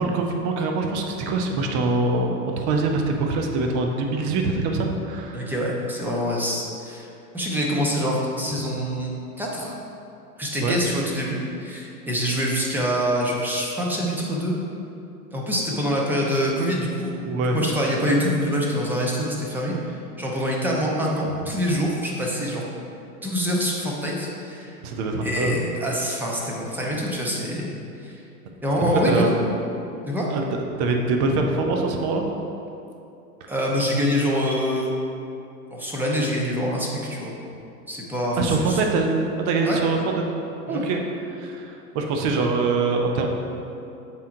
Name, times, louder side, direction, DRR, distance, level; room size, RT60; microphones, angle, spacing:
voice 1, 0.0-5.5 10.6-10.8 17.3-17.6 24.8-25.6 28.9-29.3 30.3-32.3 33.4-33.5 38.4-40.2 40.7-41.0 41.3-43.4, right 3 dB, 35° right, 2 dB, 0.8 m, -24 dB
voice 2, 5.3-7.1 7.3-9.1 9.4-9.8 10.4-14.5 15.3-17.1 17.4-22.6 23.2-24.8 25.2-27.7 28.0-28.2 28.6-29.2 30.0-30.3 33.5-34.9 35.7-37.4 37.9-38.8 39.6-39.8 40.7-40.8, equal, 5° right, -3 dB, 0.7 m, -25 dB
7.0 x 4.6 x 3.8 m, 2.7 s
hypercardioid pair, 115°, 48 cm